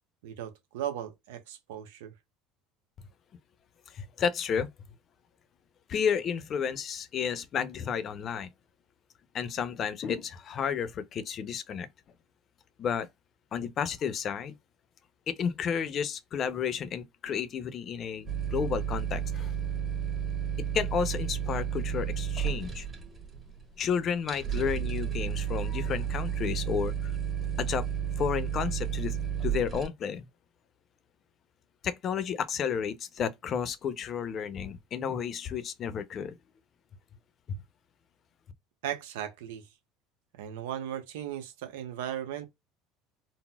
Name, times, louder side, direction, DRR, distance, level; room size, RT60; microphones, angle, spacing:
voice 1, 0.2-2.1 38.8-39.7 40.4-42.5, right 10 dB, 90° right, 0.8 m, -37 dB
voice 2, 3.9-4.7 5.9-8.5 9.3-11.9 12.8-13.1 13.5-14.5 15.3-19.5 20.7-22.9 23.8-27.1 27.6-27.8 28.2-29.2 29.4-30.3 31.8-36.4 37.5-37.6, left 7 dB, 45° left, 0.6 m, -32 dB
sound 1, 18.3-29.9, right 8 dB, 25° right, 1.0 m, -32 dB
4.0 x 2.0 x 2.2 m
supercardioid pair, 105°, 0 cm